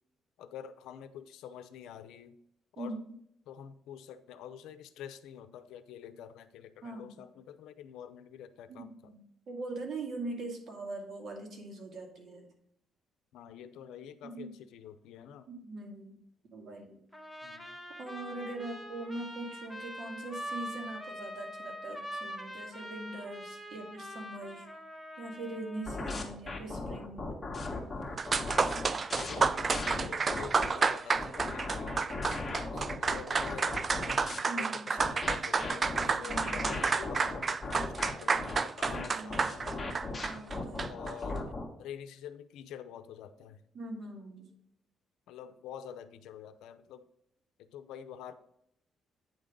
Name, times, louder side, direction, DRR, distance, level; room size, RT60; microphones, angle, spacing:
voice 1, 0.4-2.4 2.7-3.0 3.5-9.1 13.3-15.5 17.4-17.8 29.1-32.0 32.7-34.1 34.5-39.9 40.9-41.5 41.8-43.6 45.3-47.0 47.6-48.3, left 9 dB, 90° left, 10 dB, 0.6 m, -47 dB
voice 2, 2.8-3.1 6.8-7.3 8.7-12.5 14.2-14.5 15.5-16.2 16.5-17.0 18.0-24.7 25.2-27.3 34.5-34.9 36.1-36.7 38.9-39.4 40.1-40.9 43.7-44.5, right 2 dB, 55° right, 1 dB, 2.2 m, -42 dB
Trumpet, 17.1-26.2, equal, ahead, 1.2 m, -44 dB
sound 1, 25.9-30.7 31.1-34.4 35.0-41.7, left 3 dB, 20° left, 1.9 m, -38 dB
sound 2, 27.9-28.0 28.2-41.1, right 4 dB, 40° right, 0.4 m, -31 dB
9.3 x 3.7 x 5.2 m, 0.73 s
cardioid pair, 90°, 0 cm